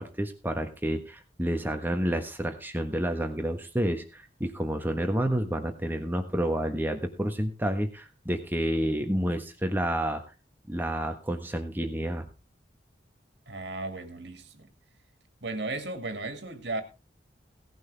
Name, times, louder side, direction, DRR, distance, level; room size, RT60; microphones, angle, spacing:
voice 1, 0.0-10.2 10.7-12.3, right 1 dB, 10° right, 1.3 m, -29 dB
voice 2, 13.5-14.7 15.4-16.8, right 2 dB, 70° right, 2.3 m, -35 dB
17.0 x 10.5 x 3.4 m
head